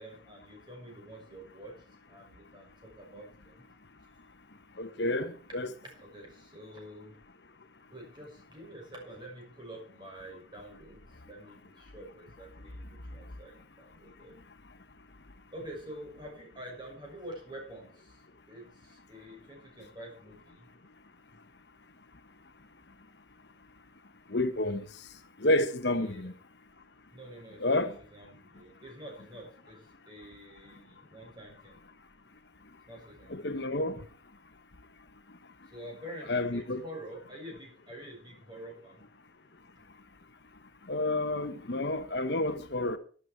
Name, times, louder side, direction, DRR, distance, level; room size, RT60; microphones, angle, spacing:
voice 1, 0.0-1.7 2.1-3.6 4.0-4.1 6.0-7.2 7.9-14.3 15.5-20.7 26.0-26.2 27.1-27.8 28.1-31.8 32.9-33.4 35.6-39.0, right 1 dB, 25° right, 6.1 m, -47 dB
voice 2, 4.8-5.7 24.3-25.1 25.4-26.3 27.6-27.9 33.3-34.1 36.3-36.8 40.9-43.0, left 1 dB, 60° left, 1.1 m, -30 dB
12.0 x 11.5 x 4.5 m
head